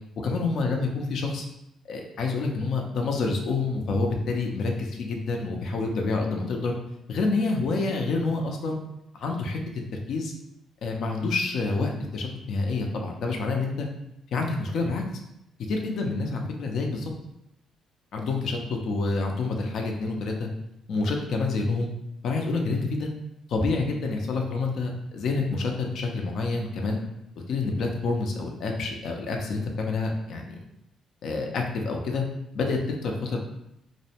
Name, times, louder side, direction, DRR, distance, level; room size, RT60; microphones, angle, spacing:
voice 1, 0.2-1.5 1.9-6.8 7.1-8.8 9.1-9.6 10.1-10.3 10.8-13.9 14.3-15.0 15.7-17.1 18.1-20.5 20.9-21.9 22.2-23.1 23.5-27.0 27.5-30.6 31.2-32.2 32.5-33.4, left 3 dB, 70° left, 2 dB, 0.4 m, -28 dB
2.6 x 2.1 x 2.8 m, 0.82 s
cardioid pair, 90°, 0 cm